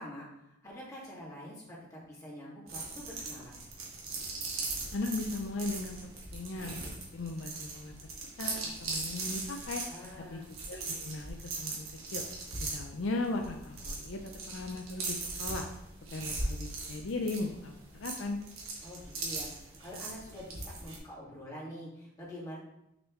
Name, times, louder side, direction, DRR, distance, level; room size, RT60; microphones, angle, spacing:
voice 1, 0.0-3.6 9.9-10.5 18.8-22.6, equal, 15° left, -7 dB, 2.1 m, -46 dB
sound 1, 2.7-21.0, right 3 dB, 90° right, 1.6 m, -39 dB
voice 2, 4.9-7.9 8.4-9.8 10.3-10.4 10.7-12.3 12.6-15.7 16.1-18.4, left 2 dB, 65° left, 4 dB, 0.5 m, -37 dB
6.1 x 5.3 x 3.1 m, 0.83 s
head